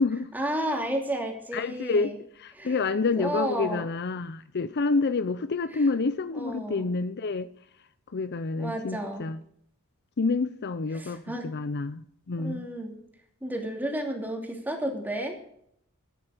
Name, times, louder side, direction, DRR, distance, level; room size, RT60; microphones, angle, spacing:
voice 1, 0.3-2.2 2.5-2.8 3.2-3.9 5.7-5.9 6.3-6.9 8.6-9.3 10.9-11.5 12.4-13.0 13.4-15.4, right 1 dB, 10° right, 1 dB, 2.8 m, -32 dB
voice 2, 1.5-2.1 2.4-7.5 8.1-9.4 10.2-12.6, left 4 dB, 50° left, 13 dB, 0.6 m, -28 dB
13.5 x 9.9 x 5.0 m, 0.68 s
head